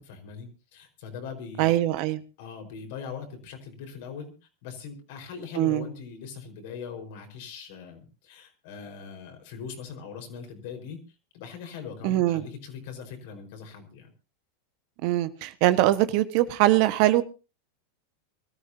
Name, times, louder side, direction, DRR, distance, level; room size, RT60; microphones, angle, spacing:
voice 1, 0.0-1.8 2.4-4.3 4.6-11.0 11.3-14.1, left 6 dB, 65° left, 4.9 m, -41 dB
voice 2, 1.6-2.2 5.5-5.9 12.0-12.5 15.0-17.2, right 15 dB, 55° right, 1.4 m, -22 dB
24.5 x 13.5 x 2.8 m
hypercardioid pair, 100°, 0 cm